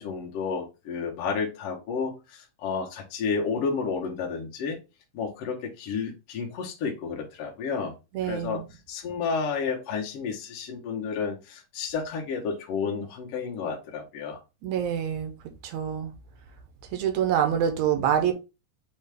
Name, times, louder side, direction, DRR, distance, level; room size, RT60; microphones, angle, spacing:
voice 1, 0.0-4.8 5.1-7.9 8.3-8.6 8.9-14.4, left 5 dB, 65° left, 1.5 m, -31 dB
voice 2, 8.1-8.6 14.6-15.3 15.6-16.1 16.9-18.3, right 9 dB, 75° right, 1.7 m, -26 dB
6.4 x 2.3 x 3.3 m
omnidirectional pair, 3.7 m